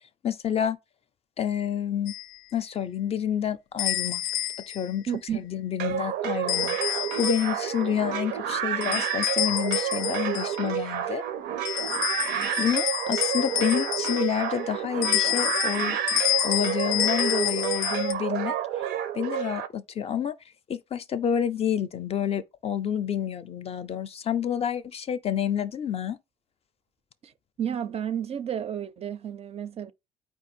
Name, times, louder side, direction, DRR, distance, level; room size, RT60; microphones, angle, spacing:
voice 1, 0.2-0.8 1.4-2.1 2.5-4.2 4.7-5.1 5.3-6.8 7.1-11.2 12.6-16.0 16.4-18.5 19.1-20.3 20.7-26.2, left 9 dB, 35° left, 0.4 m, -28 dB
sound 1, 2.1-2.3 3.8-4.9 6.5-7.7 8.8-10.6 11.6-14.5 15.0-18.1, left 12 dB, 90° left, 0.6 m, -28 dB
voice 2, 5.1-5.4 27.2-27.3 27.6-29.9, right 9 dB, 40° right, 0.4 m, -31 dB
sound 2, 5.8-19.7, right 10 dB, 90° right, 0.6 m, -30 dB
4.6 x 2.6 x 4.3 m
cardioid pair, 110°, 17 cm